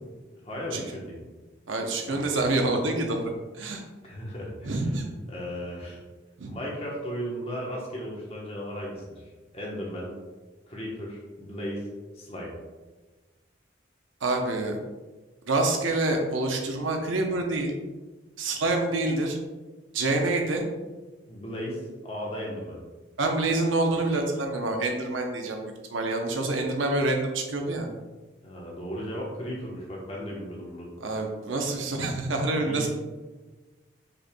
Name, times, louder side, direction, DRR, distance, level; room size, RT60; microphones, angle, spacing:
voice 1, 0.4-1.2 2.1-2.5 4.0-4.9 5.3-6.0 6.5-10.1 10.7-11.9 12.1-12.5 21.3-22.8 28.4-30.9 32.6-32.9, equal, 30° left, -4 dB, 1.1 m, -36 dB
voice 2, 1.7-3.2 3.6-3.8 4.6-5.0 6.4-6.5 14.2-14.8 15.5-17.7 18.4-19.4 19.9-20.6 23.2-25.6 25.9-27.9 31.0-32.9, right 2 dB, 90° right, 3 dB, 0.8 m, -27 dB
5.3 x 4.4 x 2.3 m, 1.3 s
head